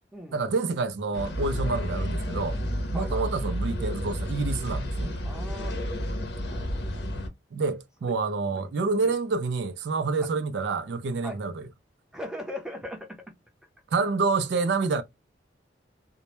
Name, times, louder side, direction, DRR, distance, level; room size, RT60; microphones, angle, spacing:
voice 1, 0.3-2.6 2.9-5.1 7.5-11.7 13.9-15.0, right 4 dB, 75° right, 0.4 m, -28 dB
sound 1, 1.1-7.3, equal, 65° left, 0.6 m, -31 dB
voice 2, 2.9-3.3 5.2-5.8 6.4-7.3 8.0-8.1 8.5-8.6 9.0-9.1 10.2-10.3 11.2-11.4 12.1-13.3, left 1 dB, 5° right, 0.6 m, -39 dB
2.1 x 2.0 x 2.9 m
head